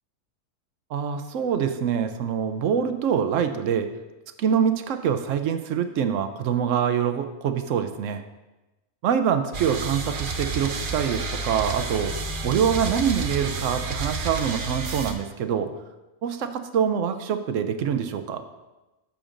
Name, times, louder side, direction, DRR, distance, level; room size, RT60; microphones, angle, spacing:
voice 1, 0.9-3.9 4.4-8.2 9.0-15.7 16.2-18.4, right 8 dB, 75° right, 8 dB, 0.9 m, -25 dB
sound 1, 9.5-15.1, right 3 dB, 50° right, 0.8 m, -30 dB
10.0 x 7.0 x 2.5 m, 1.1 s
omnidirectional pair, 1.4 m